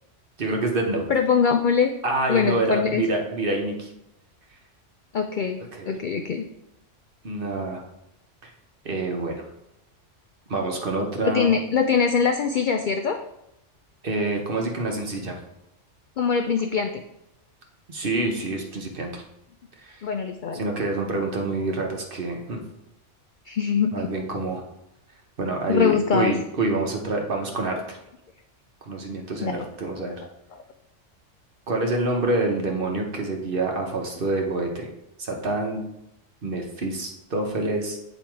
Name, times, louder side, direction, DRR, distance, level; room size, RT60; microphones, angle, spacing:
voice 1, 0.4-1.1 2.0-3.9 5.7-5.9 7.2-7.8 8.4-8.5 8.8-9.4 10.5-11.5 14.0-15.4 17.9-19.2 19.8-20.0 20.5-22.6 23.9-24.6 25.4-28.0 28.8-30.1 31.7-34.9 35.2-35.8 36.4-38.0, right 2 dB, 50° right, 2 dB, 1.1 m, -27 dB
voice 2, 1.1-1.9 2.3-3.0 5.1-5.6 5.9-6.5 11.2-13.2 16.2-17.0 20.0-20.6 23.5-24.1 25.7-26.3 29.4-29.7 30.5-30.6, left 6 dB, 65° left, 5 dB, 0.5 m, -23 dB
8.7 x 3.1 x 4.5 m, 0.87 s
omnidirectional pair, 1.3 m